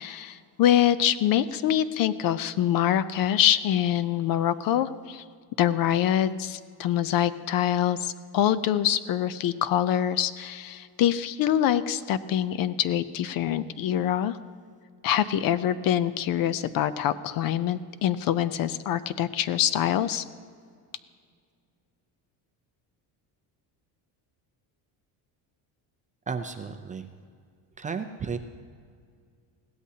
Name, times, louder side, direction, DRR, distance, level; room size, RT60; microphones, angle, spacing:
voice 1, 0.0-5.2 5.6-14.4 15.0-20.2, left 11 dB, 55° left, 15 dB, 0.6 m, -25 dB
voice 2, 26.3-27.1 27.8-28.4, right 5 dB, 20° right, 7 dB, 0.4 m, -33 dB
21.0 x 16.5 x 2.8 m, 2.1 s
cardioid pair, 160°, 42 cm